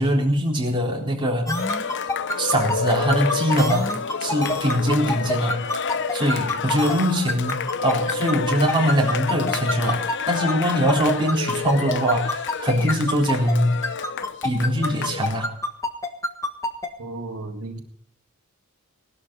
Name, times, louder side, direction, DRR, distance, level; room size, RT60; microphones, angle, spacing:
voice 1, 0.0-1.6 2.4-3.9 4.2-5.6 6.1-13.8 14.4-15.5, equal, 20° right, 3.8 m, -22 dB
Cheering, 1.5-15.4, left 6 dB, 55° left, 0.7 m, -29 dB
sound 1, 1.5-13.5 13.8-16.9, left 1 dB, 15° left, 1.5 m, -26 dB
voice 2, 17.0-17.8, right 2 dB, 85° right, 1.9 m, -34 dB
19.0 x 12.5 x 4.0 m
head